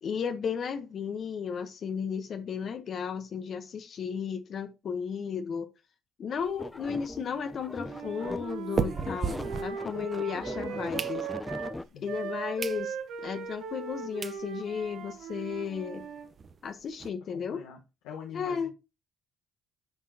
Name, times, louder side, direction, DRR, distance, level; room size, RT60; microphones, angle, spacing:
voice 1, 0.0-5.7 6.2-11.3 12.0-16.1 16.6-17.6 18.3-18.7, left 6 dB, 55° left, 1.0 m, -34 dB
sound 1, 6.4-10.3 10.7-11.7 12.2-12.3 12.6-12.8 13.3-13.4 13.9-14.0 14.2-14.4 14.8-14.9 15.1-15.2 15.5-15.6 15.9-17.1, right 5 dB, 45° right, 0.8 m, -36 dB
sound 2, 6.6-8.7 8.9-11.8, left 2 dB, 15° left, 0.6 m, -39 dB
Wind instrument woodwind instrument, 7.8-11.8 12.0-16.3, right 7 dB, 70° right, 1.2 m, -39 dB
voice 2, 11.9-12.3 17.3-17.8 18.0-18.7, left 7 dB, 80° left, 1.2 m, -45 dB
9.2 x 5.6 x 2.8 m
supercardioid pair, 60°, 0 cm